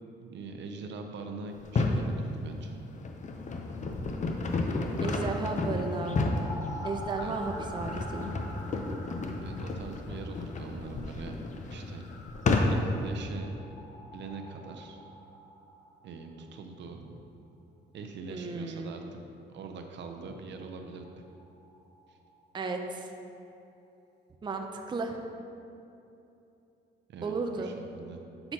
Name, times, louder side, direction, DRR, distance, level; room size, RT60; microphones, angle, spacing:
voice 1, 0.2-2.8 7.2-7.4 9.4-11.4 11.7-12.0 12.7-13.5 14.1-15.0 16.0-17.0 17.9-19.0 19.5-21.0 22.1-22.2 27.1-28.2, right 4 dB, 65° right, 4 dB, 0.6 m, -43 dB
sound 1, 1.6-2.1 2.7-13.1, left 3 dB, 40° left, 0.6 m, -31 dB
sound 2, 5.0-16.6 16.9-17.0 17.2-17.3 20.4-20.5 20.7-20.8 21.0-22.8 23.1-23.2, equal, 55° left, 1.1 m, -46 dB
voice 2, 5.0-6.2 6.8-8.3 17.0-17.2 18.3-18.9 22.5-23.1 24.4-25.2 27.2-27.7, right 4 dB, 25° right, 4 dB, 0.5 m, -34 dB
7.8 x 5.6 x 2.8 m, 2.8 s
cardioid pair, 90°, 20 cm